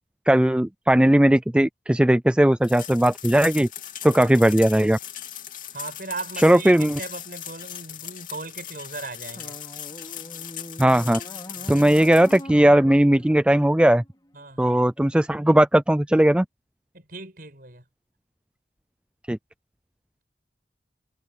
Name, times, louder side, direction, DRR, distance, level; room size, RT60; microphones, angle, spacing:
voice 1, 0.3-3.7 4.0-5.0 6.4-7.0 10.8-11.2 11.7-14.0 14.6-16.5 19.3-19.4, right 1 dB, 5° right, 0.3 m, -18 dB
sound 1, 2.6-12.4, left 11 dB, 45° left, 3.2 m, -39 dB
voice 2, 5.7-9.6 11.6-11.8 14.3-14.8 16.9-17.8, right 3 dB, 50° right, 7.6 m, -38 dB
sound 2, 9.4-14.5, left 1 dB, 25° left, 3.1 m, -42 dB
head